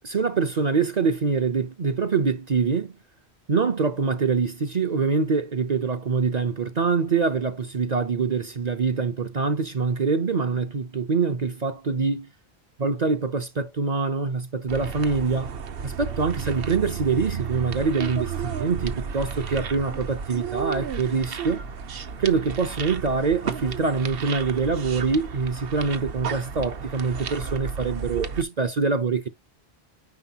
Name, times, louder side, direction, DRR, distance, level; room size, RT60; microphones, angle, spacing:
voice 1, 0.0-2.9 3.5-12.3 12.8-15.5 15.8-21.6 22.2-29.3, right 4 dB, 45° right, 0.7 m, -24 dB
sound 1, 14.7-28.4, right 6 dB, 65° right, 1.0 m, -33 dB
9.6 x 4.5 x 2.8 m
omnidirectional pair, 1.1 m